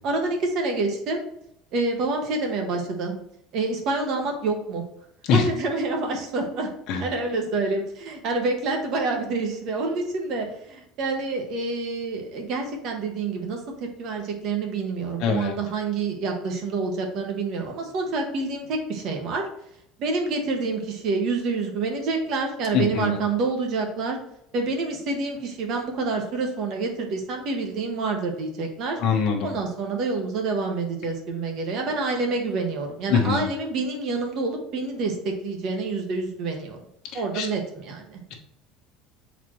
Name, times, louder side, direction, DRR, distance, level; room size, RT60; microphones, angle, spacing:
voice 1, 0.0-1.2 1.7-3.1 3.5-4.8 5.3-6.7 7.0-19.4 20.0-24.2 24.5-29.0 29.4-36.8 37.1-38.2, right 3 dB, 45° right, 2 dB, 1.2 m, -27 dB
voice 2, 15.2-15.5 22.7-23.2 29.0-29.5 33.1-33.4 37.1-37.5, left 6 dB, 50° left, 1 dB, 1.1 m, -23 dB
8.0 x 4.1 x 3.1 m, 0.74 s
cardioid pair, 170°, 0 cm